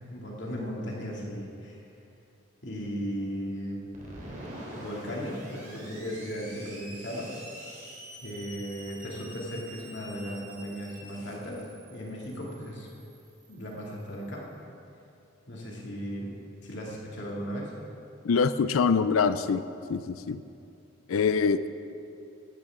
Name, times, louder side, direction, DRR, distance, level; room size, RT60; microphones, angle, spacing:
voice 1, 0.1-1.8 2.6-3.8 4.7-7.3 8.2-12.9 13.5-14.5 15.5-16.3 16.6-17.7, equal, 55° left, -3 dB, 2.6 m, -36 dB
Screech, 3.9-14.4, right 1 dB, 40° right, 3.1 m, -47 dB
voice 2, 18.2-19.6 19.9-20.4 21.1-21.7, left 5 dB, 85° left, 12 dB, 0.5 m, -24 dB
16.0 x 12.0 x 3.7 m, 2.6 s
head